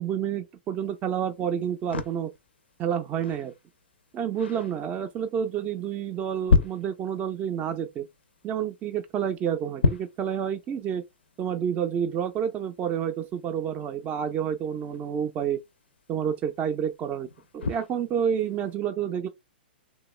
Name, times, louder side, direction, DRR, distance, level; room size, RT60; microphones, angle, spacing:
voice 1, 0.0-2.3 2.8-3.5 4.1-8.1 8.4-11.0 11.4-15.6 16.1-17.3 17.5-19.3, right 8 dB, 25° right, 0.4 m, -29 dB
sound 1, 0.8-18.8, left 5 dB, 90° left, 0.4 m, -34 dB
3.0 x 2.2 x 3.1 m
hypercardioid pair, 125°, 6 cm